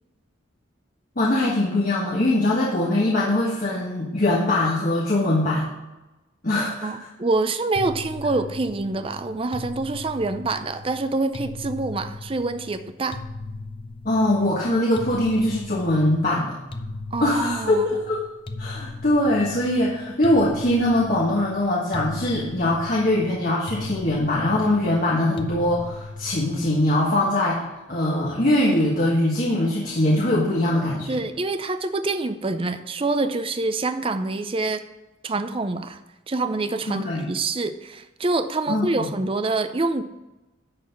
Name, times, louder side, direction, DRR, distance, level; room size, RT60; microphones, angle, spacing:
voice 1, 1.2-5.7 6.4-6.9 14.0-16.6 17.2-18.2 18.6-27.6 27.9-31.2 36.9-37.3 38.7-39.1, left 1 dB, 45° left, -5 dB, 1.4 m, -22 dB
voice 2, 6.8-13.2 17.1-17.9 31.1-34.8 35.2-36.0 36.3-40.0, right 3 dB, 30° right, 10 dB, 0.5 m, -26 dB
sound 1, 7.7-27.1, left 2 dB, 30° left, 0.6 m, -38 dB
11.0 x 4.1 x 7.0 m, 1.0 s
head